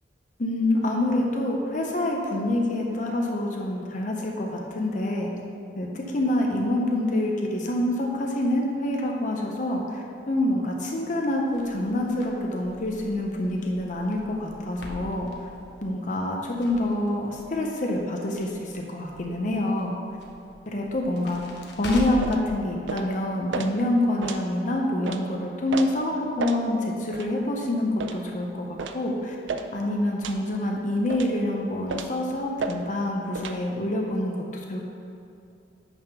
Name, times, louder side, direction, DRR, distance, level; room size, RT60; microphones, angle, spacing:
voice 1, 0.4-5.3 5.8-15.3 15.8-20.0 20.7-21.4 21.8-29.4 29.7-34.9, left 1 dB, 45° left, 0 dB, 0.7 m, -26 dB
Crackle, 11.5-22.4, left 1 dB, 70° left, 1.0 m, -43 dB
sound 1, 22.2-22.4 22.9-23.1 23.5-23.7 24.2-24.4 25.1-25.2 25.7-25.9 26.4-26.6 27.1-27.3 28.0-28.2 28.8-29.0 29.5-29.7 30.2-30.4 31.1-31.3 31.9-32.2 32.6-32.8 33.3-33.6, right 4 dB, 90° right, 0.5 m, -32 dB
8.9 x 3.6 x 5.9 m, 2.7 s
head